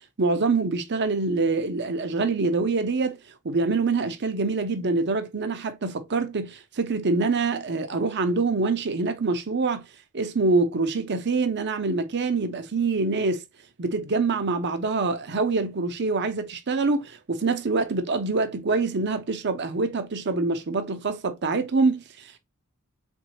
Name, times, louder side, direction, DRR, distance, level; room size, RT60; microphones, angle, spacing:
voice 1, 0.2-3.2 3.4-9.8 10.1-13.4 13.8-22.4, right 3 dB, 50° right, 0.7 m, -25 dB
4.4 x 3.6 x 2.9 m
head